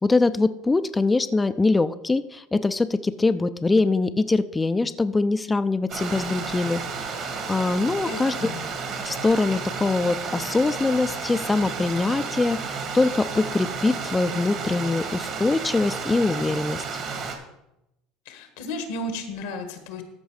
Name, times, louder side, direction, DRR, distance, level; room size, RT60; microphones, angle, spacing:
voice 1, 0.0-8.5 9.0-16.8, left 3 dB, 15° left, 11 dB, 0.4 m, -23 dB
Stream, 5.9-17.4, right 5 dB, 55° right, 2.1 m, -32 dB
voice 2, 8.0-8.6 18.2-20.0, left 2 dB, 85° left, 7 dB, 1.5 m, -33 dB
13.5 x 5.2 x 4.9 m, 0.88 s
supercardioid pair, 95°, 0 cm